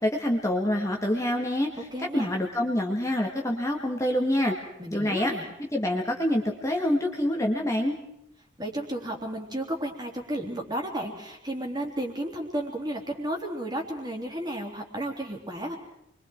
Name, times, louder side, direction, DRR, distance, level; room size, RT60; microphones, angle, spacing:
voice 1, 0.0-4.6 4.9-5.3 5.7-7.9, left 1 dB, 15° left, 1 dB, 1.9 m, -26 dB
voice 2, 1.9-2.3 4.8-5.5 8.6-15.8, right 1 dB, 20° right, 1 dB, 3.4 m, -33 dB
29.5 x 23.0 x 4.6 m, 0.80 s
head